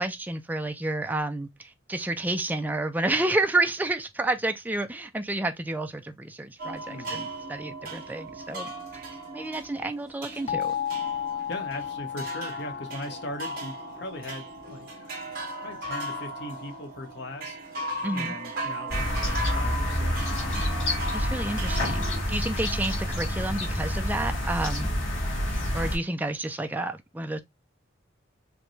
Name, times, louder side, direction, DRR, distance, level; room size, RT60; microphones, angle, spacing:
voice 1, 0.0-8.7 9.3-10.7 18.0-18.4 21.1-24.9 25.7-27.4, right 2 dB, 10° right, 0.4 m, -30 dB
sound 1, 6.6-22.2, right 1 dB, 50° right, 1.8 m, -37 dB
voice 2, 6.9-7.3 11.5-15.3 15.6-17.6 18.1-20.4, left 1 dB, 60° left, 1.0 m, -39 dB
sound 2, 10.5-15.2, left 9 dB, 35° left, 0.6 m, -34 dB
sound 3, 18.9-26.0, equal, 90° left, 2.2 m, -28 dB
5.0 x 2.2 x 3.1 m
head